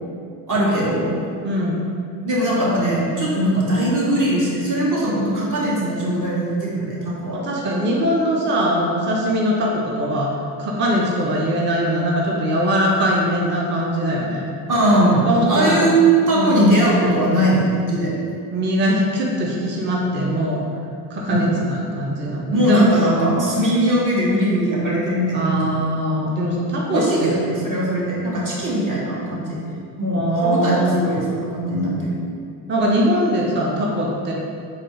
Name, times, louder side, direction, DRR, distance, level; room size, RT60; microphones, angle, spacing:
voice 1, 0.5-1.2 2.2-7.4 14.7-16.0 16.3-18.1 21.3-21.4 22.5-25.8 26.9-29.6 30.0-32.2, equal, 40° right, -5 dB, 1.2 m, -20 dB
voice 2, 1.4-1.8 7.3-10.3 10.6-14.4 15.2-15.9 16.3-16.6 18.5-20.6 21.1-22.9 25.3-27.3 30.1-30.9 32.7-34.3, equal, 25° right, -2 dB, 0.6 m, -21 dB
4.0 x 2.4 x 3.0 m, 2.3 s
supercardioid pair, 60°, 46 cm